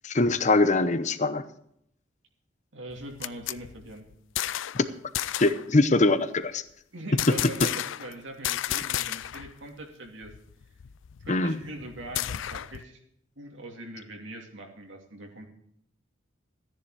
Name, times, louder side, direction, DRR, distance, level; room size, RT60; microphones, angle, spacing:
voice 1, 0.0-1.4 4.7-4.8 5.4-6.6 11.3-11.6, left 2 dB, 40° left, 12 dB, 0.8 m, -23 dB
voice 2, 2.7-4.1 6.9-10.3 11.2-13.0 13.4-15.5, right 1 dB, 75° right, 2 dB, 2.6 m, -42 dB
sound 1, 2.9-4.9 5.1-5.6 7.2-8.1 8.4-9.5 9.8-9.9 10.2-12.8, left 13 dB, 80° left, 0.4 m, -32 dB
14.5 x 10.5 x 4.8 m, 0.72 s
head